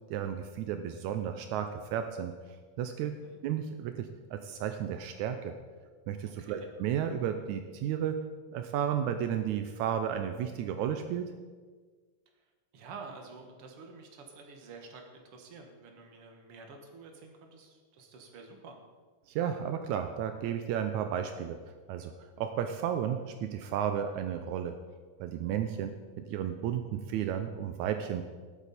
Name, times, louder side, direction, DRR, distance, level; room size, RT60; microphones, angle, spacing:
voice 1, 0.1-2.3 2.8-3.2 3.4-5.5 6.1-8.2 8.5-11.3 19.3-21.6 21.9-22.1 22.4-24.8 25.2-25.9 26.2-28.2, right 9 dB, 85° right, 7 dB, 1.7 m, -33 dB
voice 2, 3.1-3.4 6.3-6.7 12.7-18.8 25.7-25.8, right 4 dB, 50° right, 3 dB, 1.9 m, -49 dB
18.0 x 8.3 x 4.2 m, 1.5 s
omnidirectional pair, 4.1 m